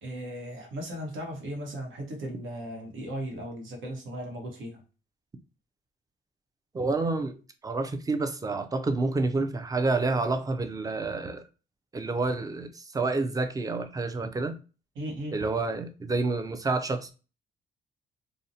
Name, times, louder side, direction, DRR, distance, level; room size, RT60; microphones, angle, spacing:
voice 1, 0.0-4.8 15.0-15.4, equal, 75° right, 1.0 m, -37 dB
voice 2, 6.7-7.4 7.6-11.4 11.9-14.6 15.3-17.1, right 3 dB, 20° right, 0.4 m, -28 dB
2.5 x 2.0 x 2.7 m
cardioid pair, 90°, 20 cm